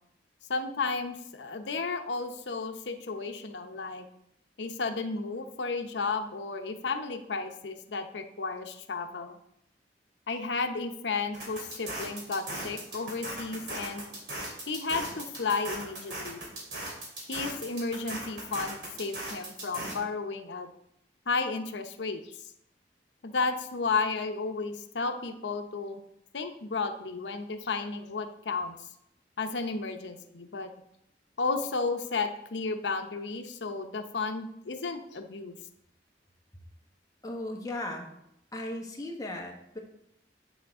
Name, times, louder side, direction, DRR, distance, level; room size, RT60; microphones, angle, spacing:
voice 1, 0.5-4.1 4.6-9.4 10.3-14.0 14.7-16.4 17.3-20.7 21.3-22.4 23.2-26.0 26.3-28.7 29.4-30.7 31.4-35.5, left 4 dB, 85° left, 6 dB, 0.7 m, -33 dB
sound 1, 11.3-20.0, right 1 dB, 65° right, 2.8 m, -38 dB
voice 2, 37.2-38.1 38.5-39.8, left 1 dB, 20° left, 1 dB, 1.2 m, -36 dB
7.6 x 7.3 x 3.6 m, 0.77 s
head